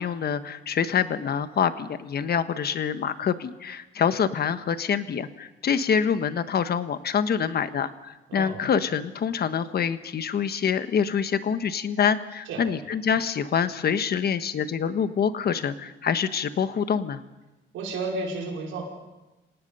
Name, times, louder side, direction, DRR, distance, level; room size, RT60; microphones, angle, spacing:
voice 1, 0.0-17.2, left 7 dB, 55° left, 11 dB, 1.3 m, -26 dB
voice 2, 17.7-18.8, right 3 dB, 90° right, -1 dB, 5.4 m, -32 dB
27.0 x 18.0 x 5.6 m, 1.1 s
cardioid pair, 90°, 20 cm